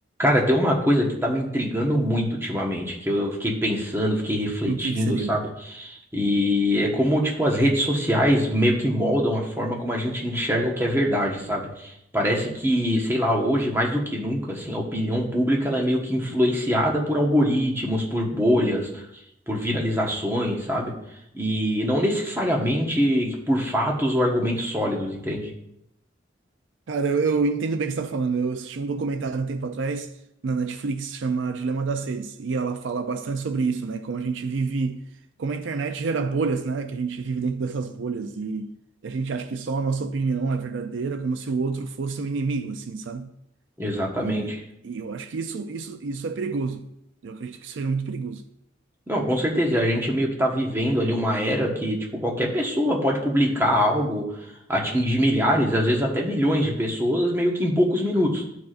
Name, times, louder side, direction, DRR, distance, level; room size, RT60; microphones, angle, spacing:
voice 1, 0.2-19.0 19.5-20.9 21.3-25.5 43.8-44.6 49.1-54.3 54.7-58.4, equal, 15° right, 1.3 m, -23 dB
voice 2, 4.6-5.4 26.9-30.1 30.4-35.0 35.4-38.7 39.0-43.3 44.2-44.5 44.8-46.9 47.2-48.4, right 4 dB, 70° right, 0.4 m, -28 dB
13.0 x 4.7 x 2.5 m
head